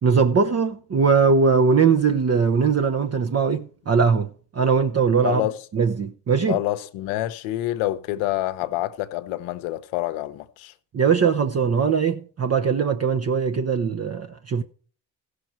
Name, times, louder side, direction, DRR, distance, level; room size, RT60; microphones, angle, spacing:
voice 1, 0.0-5.4 5.7-6.6 10.9-14.6, right 5 dB, 30° right, 0.8 m, -20 dB
voice 2, 5.2-5.6 6.5-10.7, left 15 dB, 80° left, 0.9 m, -27 dB
15.5 x 6.6 x 4.4 m
hypercardioid pair, 50°, 48 cm